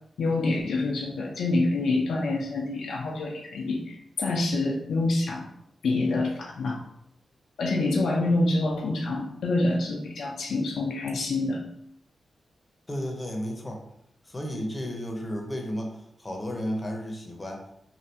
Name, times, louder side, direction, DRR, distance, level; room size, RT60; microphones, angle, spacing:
voice 1, 0.2-5.5 5.8-6.8 7.6-11.6, left 2 dB, 85° left, 0 dB, 0.5 m, -26 dB
voice 2, 12.9-13.8 14.2-17.6, equal, 25° left, 1 dB, 0.7 m, -33 dB
3.2 x 2.3 x 2.8 m, 0.75 s
cardioid pair, 50°, 0 cm